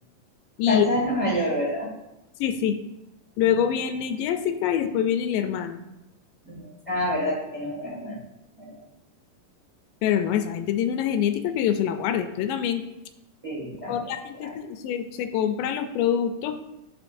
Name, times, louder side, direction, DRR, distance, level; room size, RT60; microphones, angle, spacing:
voice 1, 0.7-1.9 6.4-8.2 8.6-8.8 13.4-14.5, left 1 dB, 15° right, -7 dB, 1.4 m, -28 dB
voice 2, 2.4-2.8 3.4-5.8 10.0-12.8 13.9-16.6, left 9 dB, 85° left, 8 dB, 2.2 m, -25 dB
9.7 x 5.6 x 2.6 m, 0.93 s
omnidirectional pair, 3.9 m